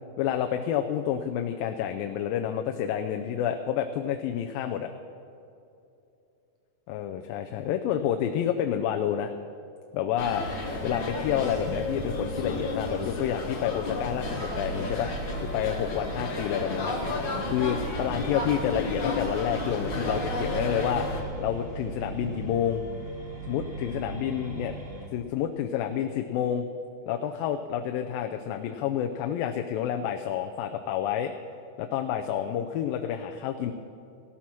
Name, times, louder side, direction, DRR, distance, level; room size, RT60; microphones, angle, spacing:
voice 1, 0.2-4.9 6.9-9.3 9.9-10.5 10.8-15.1 15.4-17.0 17.5-21.1 21.4-22.8 23.5-24.7 25.1-26.7 27.1-31.3 31.8-33.7, left 9 dB, 90° left, 5 dB, 2.4 m, -29 dB
sound 1, 10.2-21.2, left 2 dB, 45° left, 1.6 m, -32 dB
sound 2, 14.2-25.1, right 3 dB, 30° right, 1.1 m, -38 dB
16.0 x 13.0 x 6.0 m, 2.7 s
omnidirectional pair, 4.0 m